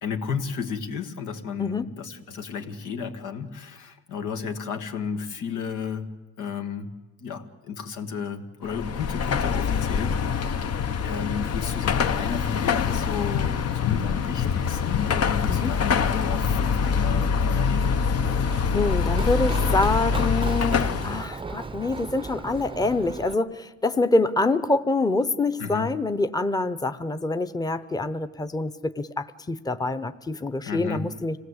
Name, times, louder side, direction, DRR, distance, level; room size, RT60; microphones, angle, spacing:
voice 1, 0.0-6.1 6.4-6.9 7.2-10.7 11.0-18.0 25.6-25.9 30.7-31.1, left 6 dB, 85° left, 5 dB, 1.8 m, -33 dB
Car passing by / Traffic noise roadway noise / Engine, 8.7-21.3, left 6 dB, 55° left, 1.0 m, -24 dB
Run, 17.7-23.3, right 4 dB, 15° right, 0.6 m, -37 dB
voice 2, 18.7-31.4, left 2 dB, 15° left, 10 dB, 0.8 m, -26 dB
26.0 x 17.5 x 8.1 m, 1.1 s
cardioid pair, 90°, 30 cm